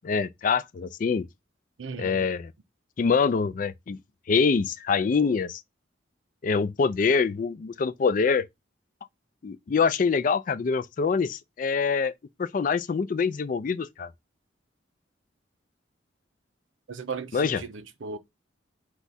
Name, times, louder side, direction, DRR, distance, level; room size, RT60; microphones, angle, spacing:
voice 1, 0.0-1.3 2.0-2.5 3.0-4.0 4.3-5.6 6.4-8.4 9.4-12.1 12.4-14.1 17.3-17.6, left 5 dB, 45° left, 0.3 m, -25 dB
voice 2, 1.8-2.3 16.9-18.2, right 5 dB, 85° right, 0.6 m, -37 dB
4.7 x 2.3 x 4.1 m
head